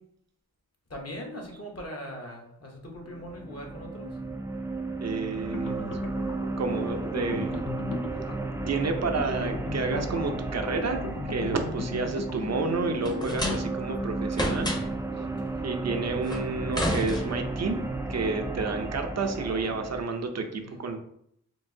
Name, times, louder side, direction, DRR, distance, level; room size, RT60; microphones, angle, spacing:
voice 1, 0.9-4.2 15.4-15.7 20.6-20.8, equal, 50° left, 0 dB, 1.1 m, -41 dB
sound 1, 3.0-20.0, right 2 dB, 10° right, 0.3 m, -34 dB
voice 2, 5.0-7.6 8.7-14.7 15.1-15.2 15.6-17.8 18.1-21.0, right 3 dB, 55° right, 5 dB, 0.6 m, -30 dB
sound 2, 5.5-14.1, left 3 dB, 75° left, 0.5 m, -38 dB
sound 3, 13.0-14.0 14.3-15.1 16.3-17.7, left 1 dB, 15° left, 0.8 m, -31 dB
4.5 x 2.7 x 2.7 m, 0.71 s
wide cardioid pair, 80°, 33 cm